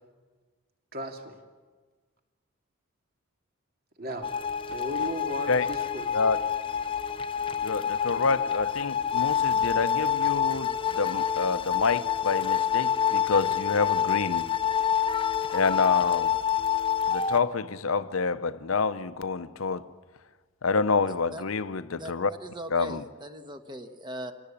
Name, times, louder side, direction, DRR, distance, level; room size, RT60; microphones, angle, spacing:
voice 1, 0.9-1.4 4.0-4.3 4.7-6.1, right 1 dB, 45° right, 2.4 m, -36 dB
sound 1, 4.2-17.4, left 8 dB, 25° left, 0.7 m, -27 dB
voice 2, 7.6-14.5 15.5-16.3 17.1-19.9 20.6-22.3 22.7-23.0, left 4 dB, 75° left, 0.8 m, -28 dB
voice 3, 21.1-21.4 22.0-22.1 22.4-24.3, right 1 dB, 20° right, 1.4 m, -40 dB
26.0 x 17.5 x 8.6 m
head